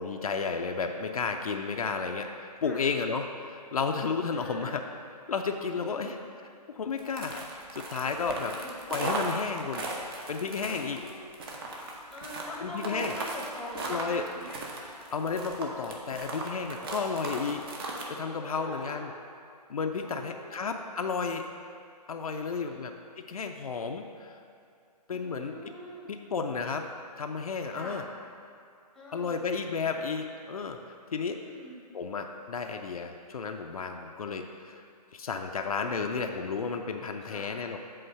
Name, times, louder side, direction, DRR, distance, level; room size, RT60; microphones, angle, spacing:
voice 1, 0.0-4.8 5.3-7.5 7.7-8.6 8.9-9.9 10.3-11.1 12.6-13.2 13.8-14.2 15.1-17.6 18.1-19.1 19.7-21.5 22.1-24.4 25.1-25.7 26.1-26.9 27.2-28.0 29.1-30.8 31.1-31.4 31.9-34.8 35.1-37.8, left 5 dB, 60° left, 4 dB, 0.5 m, -32 dB
voice 2, 4.3-4.7 5.7-6.2 8.3-8.8 10.7-11.3 12.1-14.6 18.4-19.1 20.0-20.7 22.3-22.8 25.1-26.1 27.7-28.0 28.9-29.4 31.2-31.8 37.2-37.5, left 1 dB, ahead, -4 dB, 0.9 m, -43 dB
sound 1, 7.0-18.1, right 2 dB, 35° right, 1.0 m, -37 dB
7.8 x 3.8 x 6.3 m, 2.4 s
figure-of-eight pair, 135°, 21 cm